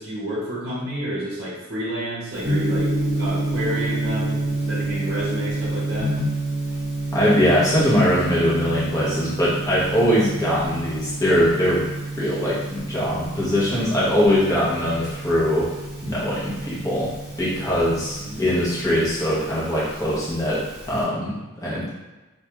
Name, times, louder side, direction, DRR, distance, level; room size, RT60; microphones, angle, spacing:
voice 1, 0.0-2.9 3.2-6.1 18.2-18.5, right 1 dB, 50° right, -8 dB, 0.6 m, -30 dB
Gong, 2.4-21.0, right 2 dB, 10° right, 1.0 m, -29 dB
voice 2, 7.1-11.9 12.2-15.7 16.0-21.9, equal, 15° left, -8 dB, 0.6 m, -22 dB
2.3 x 2.2 x 2.8 m, 1.1 s
head